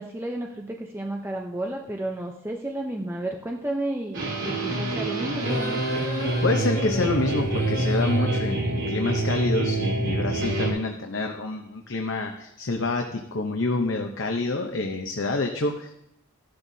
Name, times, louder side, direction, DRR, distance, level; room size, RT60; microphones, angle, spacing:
voice 1, 0.0-5.8, right 1 dB, 10° right, 1 dB, 0.6 m, -32 dB
sound 1, 4.1-10.7, right 2 dB, 55° right, 3.3 m, -26 dB
sound 2, 5.3-8.4, left 2 dB, 10° left, 4.5 m, -36 dB
voice 2, 6.4-16.0, left 2 dB, 55° left, 3 dB, 0.8 m, -27 dB
15.0 x 11.5 x 2.7 m, 0.81 s
head